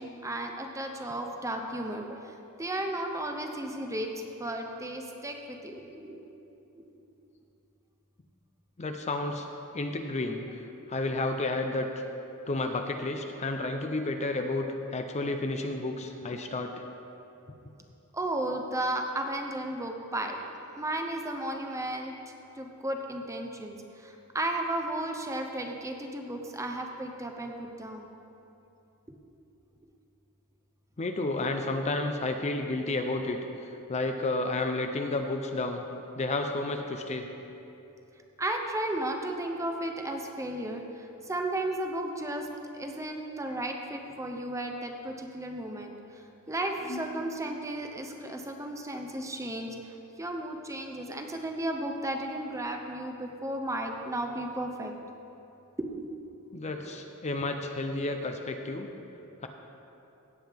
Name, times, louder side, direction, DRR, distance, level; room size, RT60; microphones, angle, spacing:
voice 1, 0.0-2.3 2.6-4.1 4.4-6.2 18.1-20.4 20.8-22.1 22.6-23.8 24.0-28.1 38.4-40.8 41.3-42.5 42.8-45.9 46.5-49.7 50.2-54.9 55.9-56.1 56.7-56.9, right 1 dB, 15° right, 3 dB, 0.7 m, -34 dB
voice 2, 8.8-9.5 9.7-10.4 10.9-12.0 12.5-16.8 17.5-17.6 31.0-33.4 33.9-35.8 36.2-37.3 46.9-47.1 56.5-58.9 59.4-59.5, left 2 dB, 30° left, 5 dB, 0.5 m, -31 dB
16.5 x 7.7 x 3.6 m, 2.9 s
head